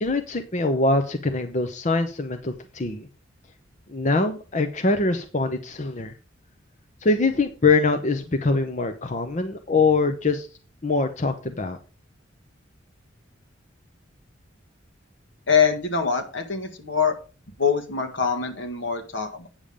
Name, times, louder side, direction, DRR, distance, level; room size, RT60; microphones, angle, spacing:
voice 1, 0.0-3.1 3.9-6.1 7.0-10.5 10.8-11.8, left 3 dB, 40° left, 7 dB, 0.8 m, -23 dB
voice 2, 15.5-17.2 17.6-19.5, left 6 dB, 70° left, 5 dB, 1.8 m, -24 dB
8.9 x 7.1 x 5.1 m, 0.35 s
head